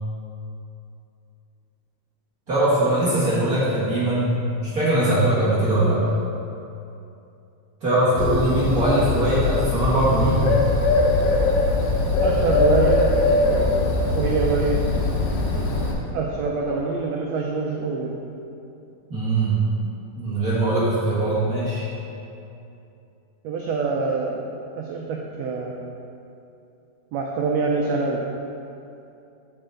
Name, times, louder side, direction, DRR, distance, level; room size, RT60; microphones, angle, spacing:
voice 1, 2.5-6.0 7.8-10.5 19.1-19.6 20.1-21.8, right 1 dB, 40° right, -10 dB, 1.4 m, -21 dB
Bird, 8.2-15.9, left 2 dB, 85° left, 2.6 m, -21 dB
voice 2, 12.2-13.0 14.1-14.8 16.1-18.2 23.4-24.4 24.7-25.9 27.1-28.2, right 4 dB, 85° right, -1 dB, 1.4 m, -25 dB
7.8 x 6.5 x 3.8 m, 2.7 s
omnidirectional pair, 3.6 m